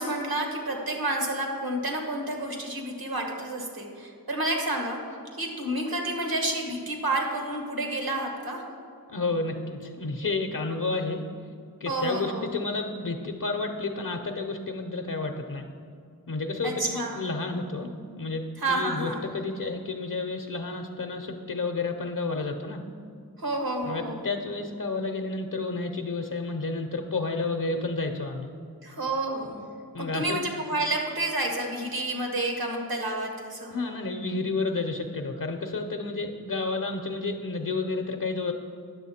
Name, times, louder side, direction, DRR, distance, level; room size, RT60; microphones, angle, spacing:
voice 1, 0.0-5.0 5.4-8.6 11.8-12.5 16.6-17.2 18.6-19.3 23.4-24.2 28.8-29.6 30.0-33.8, right 1 dB, 75° right, 1 dB, 1.4 m, -30 dB
voice 2, 9.1-11.2 11.8-15.7 16.3-22.8 23.8-28.5 29.9-30.4 33.7-38.5, left 3 dB, 60° left, 4 dB, 0.7 m, -31 dB
9.9 x 7.1 x 4.2 m, 2.3 s
wide cardioid pair, 50°, 37 cm